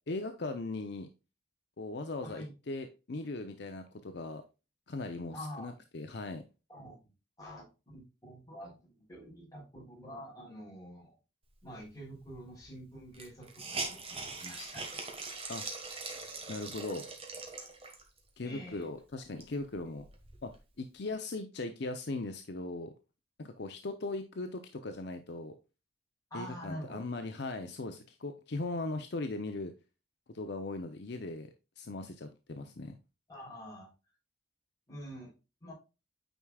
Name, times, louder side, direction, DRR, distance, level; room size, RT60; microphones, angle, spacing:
voice 1, 0.1-1.1 1.8-4.4 4.9-6.4 15.5-15.6 16.5-17.0 18.4-20.0 20.4-20.5 20.8-22.9 23.4-25.5 26.3-29.7 30.3-33.0, left 2 dB, 60° left, 7 dB, 0.6 m, -39 dB
voice 2, 5.3-5.8 6.7-7.1 7.4-11.2 11.6-15.1 18.4-18.9 26.3-27.0 33.3-33.9 34.9-35.3 35.6-35.7, equal, 20° left, -4 dB, 3.8 m, -46 dB
Hiss, 12.3-12.4 12.6-12.7 13.1-18.2 18.7-18.8 19.2-20.6, right 3 dB, 30° right, 1.4 m, -42 dB
9.0 x 4.8 x 2.3 m, 0.29 s
head